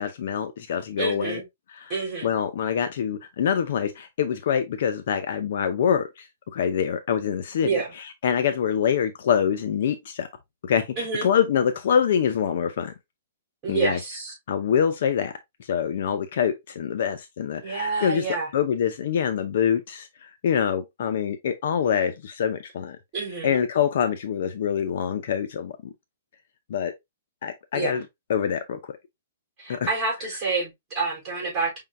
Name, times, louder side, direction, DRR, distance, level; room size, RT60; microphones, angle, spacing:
voice 1, 0.0-1.4 1.7-1.9 2.2-6.3 6.5-10.3 10.6-12.9 13.7-14.0 14.5-15.3 15.6-18.2 18.5-23.0 23.4-25.7 26.7-26.9 27.4-28.0 28.3-28.8 29.7-29.8, left 8 dB, 50° left, 0.6 m, -25 dB
voice 2, 1.0-1.4 1.9-2.3 7.6-7.9 11.0-11.3 13.6-14.3 17.6-18.5 23.1-23.6 27.7-28.0 29.6-31.8, right 4 dB, 15° right, 3.7 m, -28 dB
5.5 x 3.7 x 2.5 m
hypercardioid pair, 175°, 0 cm